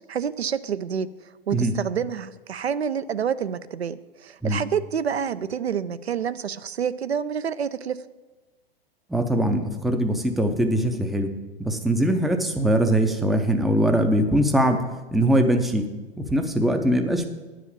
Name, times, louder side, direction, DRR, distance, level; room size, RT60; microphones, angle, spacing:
voice 1, 0.1-1.1 1.5-8.0, right 7 dB, 85° right, 14 dB, 0.5 m, -28 dB
voice 2, 9.1-11.3 11.6-14.8 15.1-15.8 16.2-17.2, right 1 dB, ahead, 6 dB, 0.4 m, -22 dB
9.6 x 5.0 x 7.0 m, 1.2 s
figure-of-eight pair, 105°, 31 cm